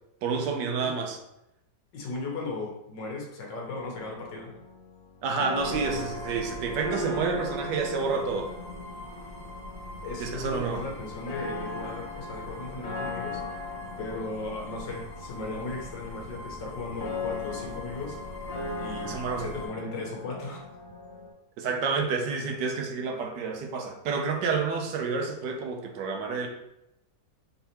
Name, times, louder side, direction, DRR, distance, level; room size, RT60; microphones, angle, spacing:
voice 1, 0.2-1.2 5.2-8.5 10.2-10.9 19.0-19.5 21.6-26.5, right 5 dB, 75° right, 2 dB, 1.2 m, -29 dB
voice 2, 1.9-4.5 10.0-13.7 14.0-18.2 18.8-20.6, left 3 dB, 80° left, -1 dB, 1.7 m, -37 dB
sound 1, 3.7-21.3, left 3 dB, 60° left, 1.2 m, -39 dB
sound 2, 5.6-19.7, left 1 dB, 30° right, 1.7 m, -43 dB
4.0 x 3.9 x 2.9 m, 0.86 s
omnidirectional pair, 2.0 m